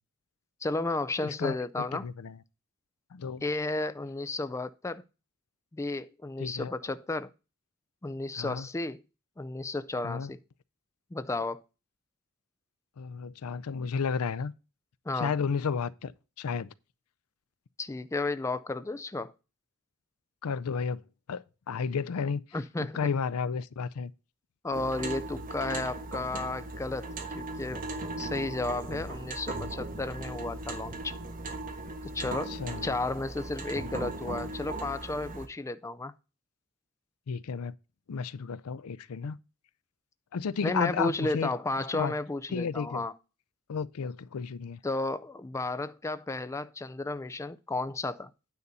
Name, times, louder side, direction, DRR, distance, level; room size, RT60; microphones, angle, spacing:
voice 1, 0.6-2.1 3.4-5.0 5.7-7.3 8.0-9.0 9.4-10.4 11.1-11.6 15.1-15.3 17.8-19.3 22.5-23.0 24.6-27.1 27.3-27.8 28.2-31.2 32.1-32.5 32.8-36.1 40.6-43.1 44.8-48.3, left 2 dB, 15° left, 0.4 m, -33 dB
voice 2, 1.2-1.6 1.9-2.4 3.1-3.4 6.4-6.7 8.4-8.7 10.0-10.3 13.0-14.5 15.1-16.1 16.4-16.7 20.4-21.0 21.3-22.4 22.8-24.1 32.2-33.0 37.3-37.7 38.1-39.4 40.3-41.5 41.9-42.1 42.5-43.0 43.7-44.8, left 5 dB, 75° left, 0.5 m, -32 dB
sound 1, 24.7-35.5, right 2 dB, 40° right, 1.3 m, -38 dB
9.5 x 4.1 x 6.7 m
head